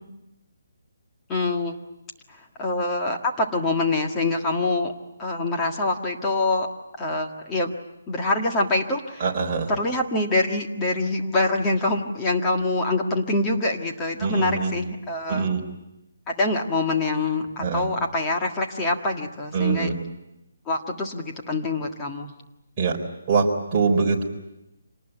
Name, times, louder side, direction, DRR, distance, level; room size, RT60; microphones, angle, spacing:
voice 1, 1.3-1.7 2.6-4.9 5.2-6.7 7.0-7.7 8.1-9.2 9.7-15.5 16.3-19.9 20.7-22.3, left 2 dB, 15° left, 0 dB, 1.8 m, -25 dB
voice 2, 9.2-9.7 14.2-14.7 15.3-15.6 17.6-17.9 19.5-19.9 22.8-23.0 23.3-24.2, right 5 dB, 20° right, -3 dB, 3.9 m, -23 dB
26.5 x 19.5 x 9.1 m, 0.92 s
hypercardioid pair, 170°, 0 cm